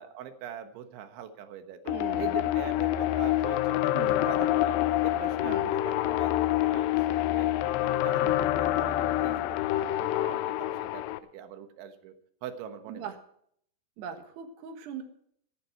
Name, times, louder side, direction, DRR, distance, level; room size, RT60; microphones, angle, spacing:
voice 1, 0.0-6.3 6.6-7.5 7.8-11.1 11.3-12.1 12.4-13.1, right 9 dB, 90° right, 8 dB, 3.7 m, -42 dB
sound 1, 1.9-11.2, left 14 dB, 80° left, 2.8 m, -27 dB
voice 2, 1.9-2.3 3.9-4.3 5.4-5.7 8.2-8.4 12.9-13.1 14.0-15.0, right 8 dB, 70° right, 7 dB, 3.4 m, -40 dB
15.5 x 14.5 x 4.5 m, 0.66 s
omnidirectional pair, 5.2 m